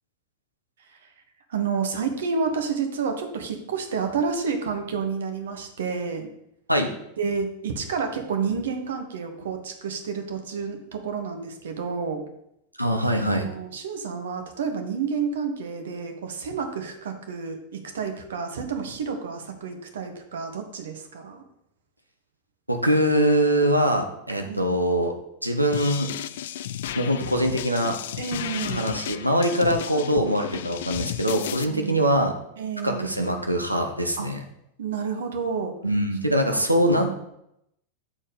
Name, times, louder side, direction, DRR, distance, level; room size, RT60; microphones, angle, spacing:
voice 1, 1.5-6.3 7.2-12.2 13.3-21.4 24.4-24.7 28.2-28.9 31.5-32.0 32.6-33.1 34.2-34.3 34.8-35.7 36.2-37.2, right 5 dB, 60° right, 6 dB, 1.2 m, -30 dB
voice 2, 12.8-13.5 22.7-25.1 25.4-26.1 26.9-28.0 28.7-32.3 32.8-34.4 35.8-37.1, equal, 85° right, 4 dB, 1.0 m, -23 dB
sound 1, 25.7-31.6, left 11 dB, 55° left, 0.3 m, -33 dB
7.6 x 4.3 x 5.1 m, 0.78 s
figure-of-eight pair, 90°, 0 cm